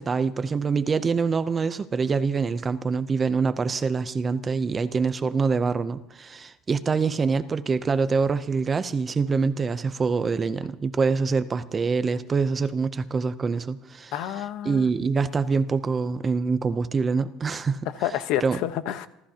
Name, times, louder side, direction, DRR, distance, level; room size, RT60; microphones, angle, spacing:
voice 1, 0.0-14.1 14.7-17.9 18.4-18.6, right 5 dB, 15° right, 0.6 m, -25 dB
voice 2, 14.1-14.9 18.0-19.1, left 12 dB, 55° left, 0.9 m, -29 dB
29.5 x 14.0 x 2.8 m
cardioid pair, 180°, 0 cm